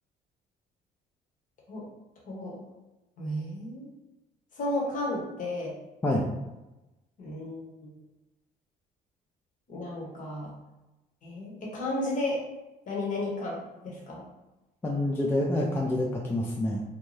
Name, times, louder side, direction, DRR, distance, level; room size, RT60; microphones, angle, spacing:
voice 1, 3.2-3.9 4.6-5.7 7.2-7.9 9.7-10.5 11.2-12.4 12.9-14.2, left 1 dB, 50° left, -2 dB, 0.9 m, -33 dB
voice 2, 14.8-16.8, left 1 dB, 15° left, -2 dB, 0.3 m, -27 dB
2.6 x 2.2 x 3.1 m, 1.0 s
cardioid pair, 110°, 17 cm